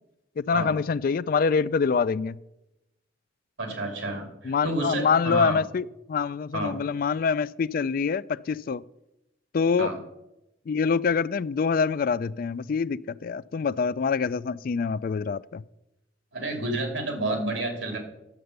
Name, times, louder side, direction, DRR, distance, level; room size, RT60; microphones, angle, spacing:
voice 1, 0.4-2.4 4.4-8.8 9.5-9.9 10.7-15.6, left 5 dB, 50° left, 0.3 m, -25 dB
voice 2, 3.6-5.6 6.5-6.8 9.8-10.0 16.3-18.0, right 2 dB, 85° right, 2.8 m, -30 dB
11.0 x 7.9 x 6.6 m
head